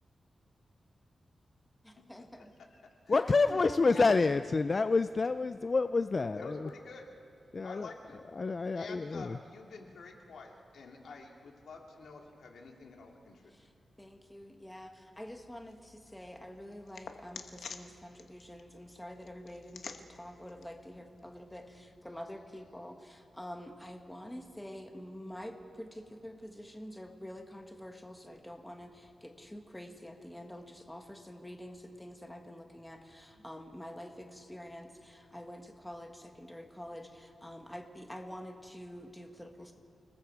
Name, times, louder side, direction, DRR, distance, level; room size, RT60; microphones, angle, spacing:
voice 1, 1.8-2.5 3.1-4.3 13.5-13.6 14.0-39.7, equal, 5° left, 4 dB, 1.5 m, -47 dB
voice 2, 2.4-3.2 3.5-4.2 6.3-7.1 7.6-8.2 8.7-13.7, left 3 dB, 90° left, 1 dB, 2.6 m, -49 dB
voice 3, 3.1-6.6 7.5-7.9 8.4-9.4, left 4 dB, 35° left, 11 dB, 0.4 m, -28 dB
sound 1, 15.1-21.9, left 5 dB, 75° left, 1.2 m, -51 dB
29.0 x 20.0 x 4.7 m, 2.8 s
wide cardioid pair, 165°, 0 cm